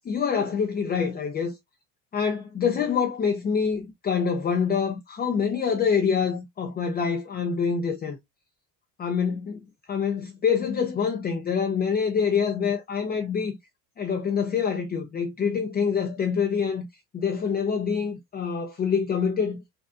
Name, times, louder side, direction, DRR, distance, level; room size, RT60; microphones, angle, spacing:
voice 1, 0.1-1.6 2.1-8.2 9.0-9.6 9.9-13.6 14.0-16.9 17.1-19.6, left 6 dB, 25° left, 0.6 m, -26 dB
5.1 x 2.3 x 2.4 m
cardioid pair, 115°, 38 cm